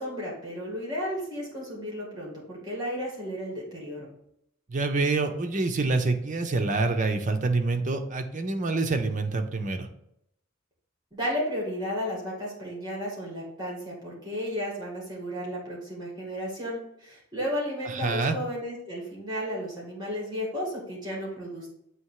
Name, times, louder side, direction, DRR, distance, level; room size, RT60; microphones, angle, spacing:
voice 1, 0.0-4.1 11.1-21.7, equal, 20° right, -4 dB, 2.3 m, -33 dB
voice 2, 4.7-9.9 17.8-18.4, right 3 dB, 40° right, 6 dB, 0.6 m, -26 dB
7.9 x 3.2 x 4.7 m, 0.77 s
head